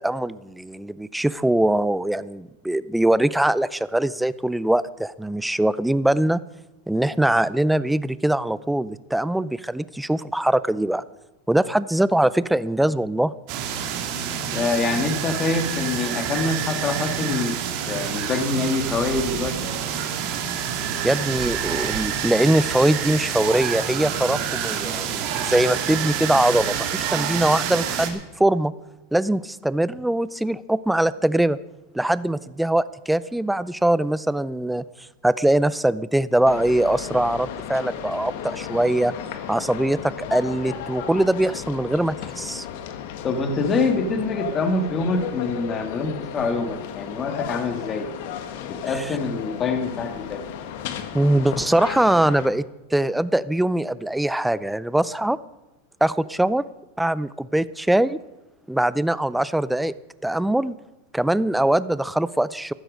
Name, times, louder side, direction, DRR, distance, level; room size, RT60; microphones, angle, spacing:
voice 1, 0.0-6.4 6.9-11.0 11.5-13.3 21.0-28.7 29.1-31.6 31.9-34.8 35.2-39.1 39.5-42.7 48.9-49.2 51.1-52.6 52.9-55.4 56.0-56.6 57.0-58.2 58.7-59.9 60.2-60.7 61.1-62.7, right 1 dB, 5° right, 17 dB, 0.4 m, -22 dB
sound 1, 13.5-28.1, right 8 dB, 50° right, 2.3 m, -27 dB
voice 2, 14.5-17.6 17.9-19.7 43.2-48.1 48.7-50.4, left 3 dB, 25° left, 6 dB, 1.7 m, -25 dB
sound 2, 36.5-52.5, left 9 dB, 60° left, 1.5 m, -34 dB
14.5 x 12.5 x 5.2 m, 1.0 s
supercardioid pair, 135°, 0 cm